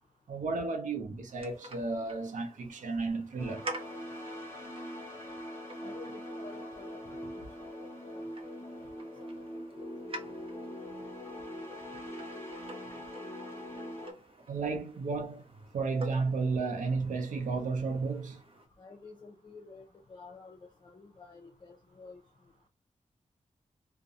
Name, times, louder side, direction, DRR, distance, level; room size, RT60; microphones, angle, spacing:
voice 1, 0.3-3.7 14.5-15.5 15.7-18.4, right 4 dB, 85° right, 0.6 m, -33 dB
sound 1, 1.3-18.7, right 2 dB, 45° right, 0.7 m, -49 dB
sound 2, 3.4-14.1, equal, 20° left, 0.9 m, -42 dB
voice 2, 5.8-7.7 8.1-8.3 8.9-9.9 10.2-11.8 12.2-12.3 18.8-22.2, left 3 dB, 40° left, 0.5 m, -52 dB
2.4 x 2.1 x 2.7 m
wide cardioid pair, 115°, 13 cm